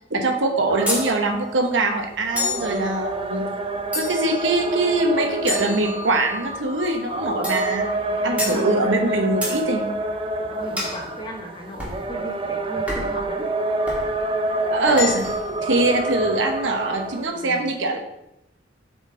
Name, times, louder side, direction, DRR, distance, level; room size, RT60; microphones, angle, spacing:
voice 1, 0.0-3.4 3.9-7.8 8.2-9.9 14.7-15.2 15.6-18.0, right 2 dB, 70° right, 4 dB, 1.0 m, -22 dB
sound 1, 0.7-17.3, right 2 dB, 30° right, 0.4 m, -28 dB
sound 2, 0.9-1.1 2.4-2.7 3.9-4.4 5.5-6.4 7.4-7.7 8.4-8.6 9.4-9.6 10.8-11.0 11.8-12.0 12.9-13.2 13.9-14.1 14.9-15.5, left 2 dB, 10° right, 1.6 m, -28 dB
voice 2, 8.1-9.0 10.5-13.5 17.3-17.7, equal, 25° left, 2 dB, 0.8 m, -37 dB
6.9 x 4.0 x 3.7 m, 0.83 s
head